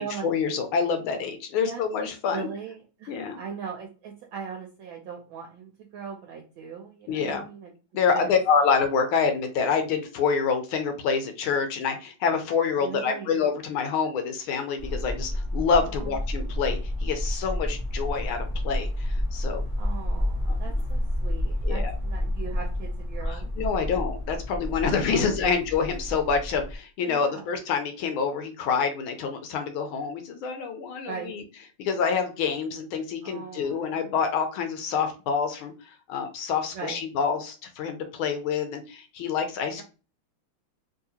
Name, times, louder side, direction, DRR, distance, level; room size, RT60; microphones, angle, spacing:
voice 1, 0.0-2.5 3.1-3.4 7.1-7.5 7.9-19.6 21.6-21.9 23.2-31.4 31.8-39.8, left 5 dB, 75° left, 6 dB, 1.5 m, -27 dB
voice 2, 2.3-7.7 8.1-8.3 12.8-13.4 15.9-16.2 19.8-23.5 25.1-25.5 27.1-27.5 31.0-31.4 33.2-34.1 36.7-37.0, right 6 dB, 75° right, 1 dB, 1.3 m, -39 dB
sound 1, 14.8-26.8, left 1 dB, 55° left, 0.3 m, -30 dB
3.7 x 2.7 x 2.8 m, 0.33 s
omnidirectional pair, 2.4 m